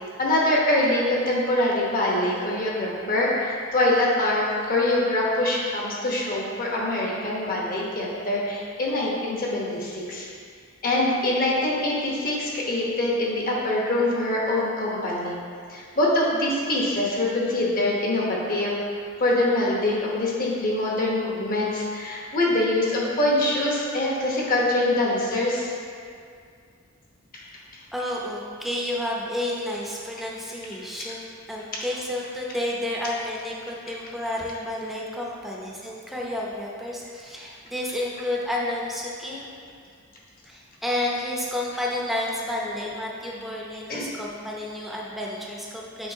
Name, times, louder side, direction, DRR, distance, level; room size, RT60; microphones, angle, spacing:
voice 1, 0.2-10.3 10.8-15.3 15.7-18.8 19.2-25.7 27.3-27.4 43.9-44.1, left 1 dB, 40° left, -4 dB, 1.1 m, -24 dB
voice 2, 27.9-39.5 40.5-46.1, left 1 dB, ahead, -4 dB, 0.7 m, -31 dB
7.1 x 4.9 x 2.8 m, 2.2 s
head